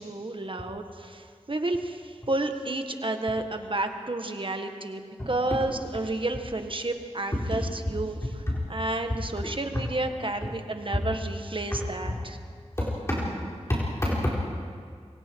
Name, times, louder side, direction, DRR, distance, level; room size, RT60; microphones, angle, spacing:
voice 1, 0.0-12.4, right 2 dB, 50° right, 5 dB, 1.6 m, -31 dB
voice 2, 11.7-12.2 12.8-13.3 13.7-14.3, left 1 dB, 25° left, -6 dB, 4.2 m, -28 dB
27.5 x 24.0 x 4.7 m, 2.1 s
wide cardioid pair, 70°, 12 cm